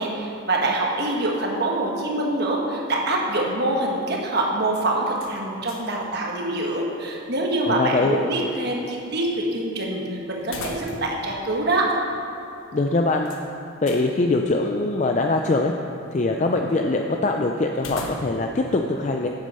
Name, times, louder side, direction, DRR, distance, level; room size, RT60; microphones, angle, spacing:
voice 1, 0.0-12.1, right 2 dB, 50° right, -1 dB, 1.3 m, -25 dB
sound 1, 5.1-6.0 6.3-6.4 10.4-11.3 11.6-11.7 13.3-14.1 17.7-18.6, left 2 dB, 90° left, 1.1 m, -37 dB
voice 2, 7.6-8.2 12.7-13.3 13.8-15.7 16.1-19.3, left 2 dB, 35° left, 3 dB, 0.4 m, -22 dB
8.9 x 8.3 x 5.5 m, 2.9 s
head